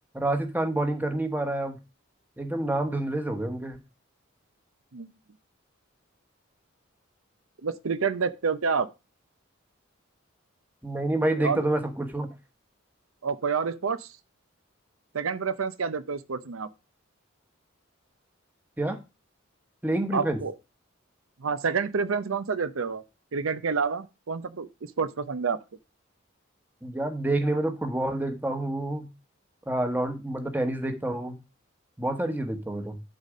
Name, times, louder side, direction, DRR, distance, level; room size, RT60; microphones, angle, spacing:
voice 1, 0.1-1.8 2.4-3.8 10.8-12.3 18.8-19.0 19.8-20.4 26.8-29.1 29.7-31.4 32.0-33.0, right 1 dB, 10° right, 1.1 m, -28 dB
voice 2, 7.6-8.9 11.4-11.6 13.2-14.1 15.1-16.7 20.1-20.5 21.4-23.0 23.3-24.7 25.0-25.6, right 5 dB, 85° right, 0.6 m, -28 dB
11.5 x 4.2 x 5.0 m
head